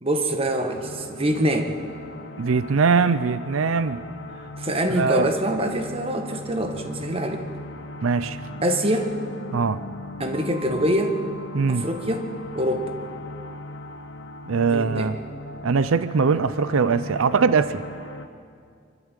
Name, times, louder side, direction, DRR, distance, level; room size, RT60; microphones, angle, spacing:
voice 1, 0.0-1.7 4.5-7.4 8.6-9.1 10.2-11.1 11.7-12.3 12.5-12.9 14.7-15.1, right 1 dB, 30° right, 5 dB, 1.4 m, -24 dB
sound 1, 0.7-18.3, left 1 dB, 75° left, 1.2 m, -38 dB
voice 2, 2.4-4.0 4.9-5.3 8.0-8.4 9.5-9.8 11.5-11.8 14.5-15.1 15.6-17.8, right 5 dB, 85° right, 14 dB, 0.5 m, -21 dB
24.5 x 12.5 x 9.1 m, 2.3 s
head